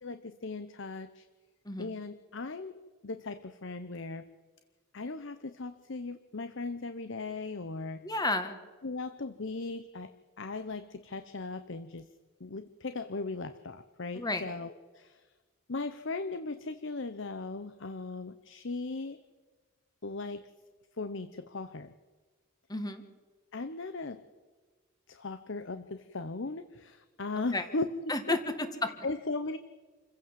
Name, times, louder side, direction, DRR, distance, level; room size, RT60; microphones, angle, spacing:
voice 1, 0.0-1.3 1.8-2.8 3.0-4.3 4.9-8.0 8.8-10.1 10.4-12.1 12.4-15.2 15.7-19.2 20.0-20.5 21.0-21.9 23.5-24.2 25.1-27.9 28.3-28.4 29.0-29.6, left 3 dB, 55° left, 11 dB, 0.8 m, -38 dB
voice 2, 8.0-8.6 14.1-14.5 22.7-23.0 27.4-27.6 28.1-29.1, left 2 dB, 20° left, 8 dB, 1.8 m, -32 dB
27.5 x 15.5 x 7.6 m, 1.4 s
head